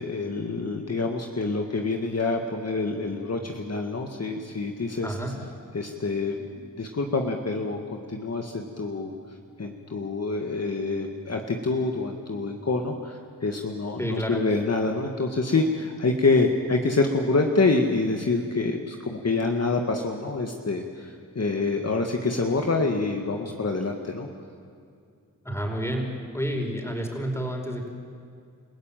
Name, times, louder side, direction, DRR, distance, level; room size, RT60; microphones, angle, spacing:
voice 1, 0.0-5.1 5.7-9.1 9.6-24.3, left 3 dB, 45° left, 3 dB, 1.9 m, -26 dB
voice 2, 5.0-5.3 14.0-14.5 25.4-26.1 26.3-27.9, equal, 5° left, 2 dB, 5.3 m, -29 dB
30.0 x 15.5 x 9.1 m, 2.4 s
cardioid pair, 55°, 35 cm